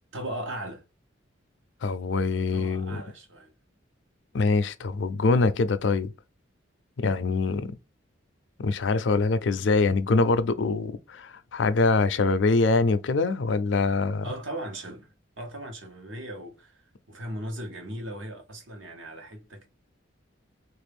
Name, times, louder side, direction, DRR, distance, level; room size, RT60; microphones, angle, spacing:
voice 1, 0.1-0.8 2.5-3.5 14.2-16.8 17.1-19.7, right 1 dB, 75° right, 1.1 m, -38 dB
voice 2, 1.8-3.0 4.3-6.1 7.0-7.7 8.6-14.3, left 3 dB, 65° left, 0.4 m, -24 dB
3.3 x 2.5 x 3.4 m
head